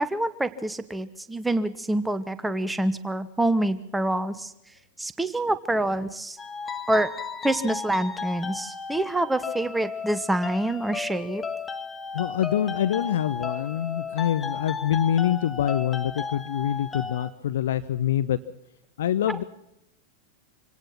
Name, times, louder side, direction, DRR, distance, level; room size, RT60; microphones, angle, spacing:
voice 1, 0.0-4.5 5.0-6.4 6.9-7.1 7.4-11.4 19.3-19.4, right 1 dB, 5° right, 14 dB, 1.0 m, -26 dB
sound 1, 6.4-17.3, left 5 dB, 15° left, 1.6 m, -35 dB
voice 2, 12.1-18.4 19.0-19.4, left 10 dB, 60° left, 13 dB, 0.8 m, -25 dB
26.0 x 18.0 x 5.9 m, 0.82 s
figure-of-eight pair, 90°, 0 cm